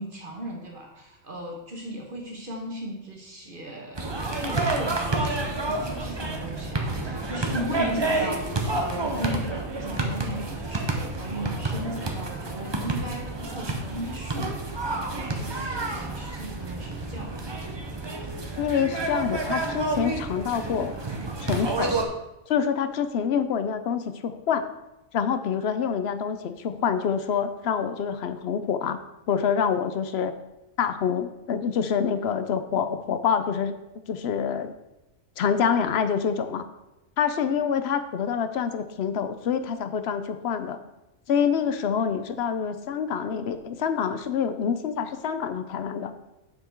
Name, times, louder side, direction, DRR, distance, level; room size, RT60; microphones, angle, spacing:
voice 1, 0.0-4.1 4.4-17.3, equal, 40° right, -1 dB, 1.3 m, -36 dB
sound 1, 3.9-22.1, right 2 dB, 25° right, 0.6 m, -29 dB
voice 2, 18.6-21.0 21.4-21.9 22.5-24.7 25.1-29.0 29.3-30.3 30.8-33.7 34.1-34.7 35.4-36.7 37.2-40.8 41.3-46.1, left 7 dB, 60° left, 10 dB, 0.8 m, -26 dB
7.0 x 5.8 x 4.5 m, 0.97 s
omnidirectional pair, 1.4 m